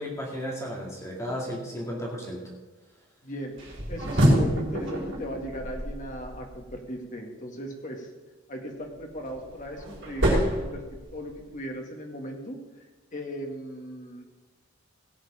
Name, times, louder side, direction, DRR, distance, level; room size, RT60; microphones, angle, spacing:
voice 1, 0.0-2.4, equal, 15° left, -3 dB, 2.4 m, -34 dB
voice 2, 3.2-8.1 8.5-12.6 13.1-14.2, equal, 35° left, 2 dB, 1.9 m, -37 dB
sound 1, 3.6-6.7 8.9-11.5, equal, 55° right, 4.0 m, -27 dB
17.0 x 8.2 x 4.9 m, 1.2 s
head